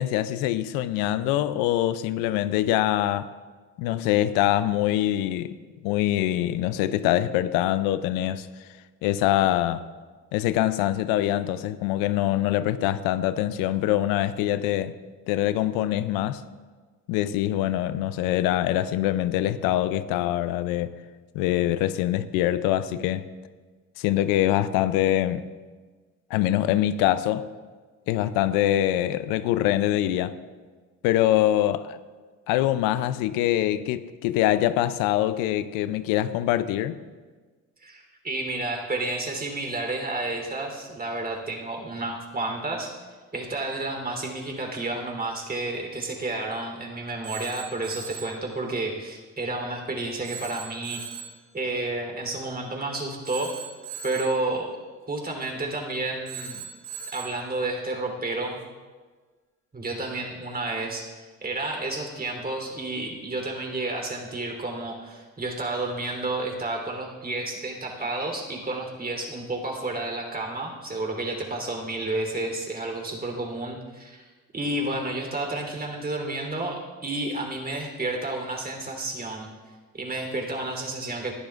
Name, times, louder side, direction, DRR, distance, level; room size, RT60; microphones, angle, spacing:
voice 1, 0.0-3.3 3.8-5.5 5.8-8.5 9.0-9.9 10.3-15.0 15.3-16.4 17.1-21.0 21.3-23.3 24.0-25.5 26.3-27.5 28.1-30.4 31.0-32.0 32.5-37.0, left 13 dB, 90° left, 0.5 m, -24 dB
voice 2, 37.8-42.9 43.3-51.0 51.5-53.5 54.0-54.7 55.1-56.6 57.1-58.6 59.7-74.3 74.5-79.5 79.9-81.3, right 2 dB, 25° right, 3.5 m, -31 dB
Telephone, 47.2-48.4 50.2-51.4 53.2-54.4 56.3-57.4, right 7 dB, 70° right, 3.9 m, -39 dB
20.0 x 11.5 x 2.5 m
supercardioid pair, 80°, 34 cm